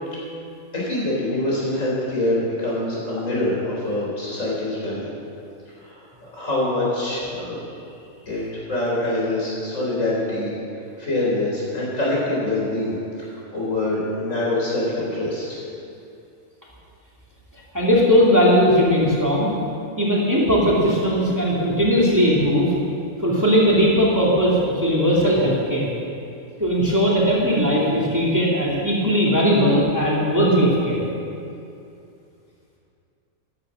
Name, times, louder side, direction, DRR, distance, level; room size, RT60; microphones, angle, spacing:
voice 1, 0.7-5.1 5.8-7.6 8.3-10.5 11.0-15.6, left 1 dB, 60° left, -6 dB, 4.7 m, -25 dB
voice 2, 17.7-19.5 20.0-22.7 23.2-25.9 26.6-31.1, equal, 10° right, -6 dB, 2.4 m, -18 dB
14.0 x 10.0 x 6.2 m, 2.6 s
omnidirectional pair, 1.5 m